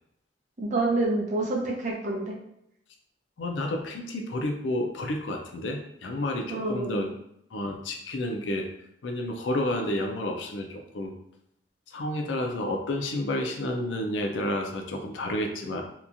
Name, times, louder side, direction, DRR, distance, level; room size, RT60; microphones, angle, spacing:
voice 1, 0.6-2.4 6.5-7.1, right 2 dB, 40° right, -1 dB, 0.6 m, -28 dB
voice 2, 3.4-7.1 7.5-8.7 9.0-11.1 11.9-15.8, left 1 dB, 80° left, 3 dB, 0.5 m, -30 dB
2.9 x 2.3 x 2.5 m, 0.77 s
head